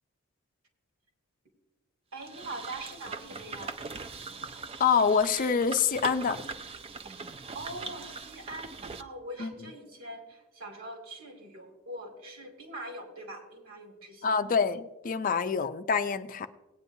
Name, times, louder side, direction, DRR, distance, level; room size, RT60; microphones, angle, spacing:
voice 1, 2.1-3.8 7.3-14.4, right 1 dB, 75° right, 2 dB, 2.4 m, -43 dB
sound 1, 2.2-9.0, right 4 dB, 25° right, 0.4 m, -41 dB
voice 2, 4.8-6.4 9.4-9.5 14.2-16.5, left 6 dB, 40° left, 10 dB, 0.4 m, -26 dB
18.0 x 9.2 x 2.7 m, 1.1 s
head